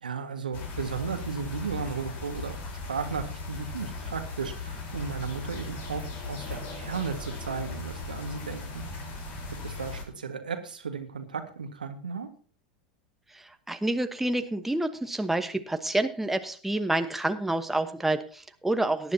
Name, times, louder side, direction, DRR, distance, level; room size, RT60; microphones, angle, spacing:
voice 1, 0.0-2.6 2.8-8.9 9.5-12.3, right 5 dB, 85° right, 7 dB, 1.6 m, -35 dB
sound 1, 0.5-10.0, left 3 dB, 45° left, 4.1 m, -38 dB
voice 2, 13.3-19.1, right 2 dB, 5° right, 8 dB, 1.1 m, -28 dB
18.0 x 10.5 x 2.8 m, 0.41 s
hypercardioid pair, 85°, 4 cm